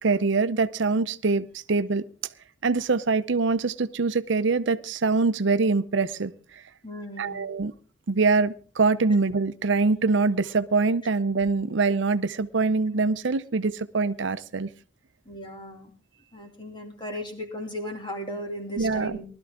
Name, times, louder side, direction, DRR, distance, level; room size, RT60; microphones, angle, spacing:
voice 1, 0.0-2.0 2.6-6.6 7.2-7.7 8.1-14.7 18.8-19.2, right 4 dB, 75° right, 13 dB, 0.6 m, -24 dB
voice 2, 6.8-7.4 15.2-15.9 16.3-19.2, equal, 25° left, 3 dB, 2.6 m, -36 dB
20.0 x 12.5 x 3.6 m, 0.38 s
head